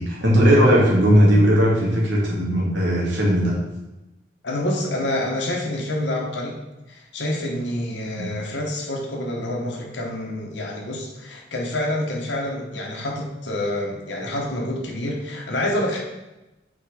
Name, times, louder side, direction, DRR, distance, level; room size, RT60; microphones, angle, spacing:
voice 1, 0.0-3.6 8.2-8.3, equal, 80° right, -4 dB, 2.1 m, -17 dB
voice 2, 4.4-6.6 6.9-16.0, left 1 dB, 70° left, -1 dB, 1.2 m, -27 dB
5.9 x 4.7 x 4.9 m, 1.0 s
head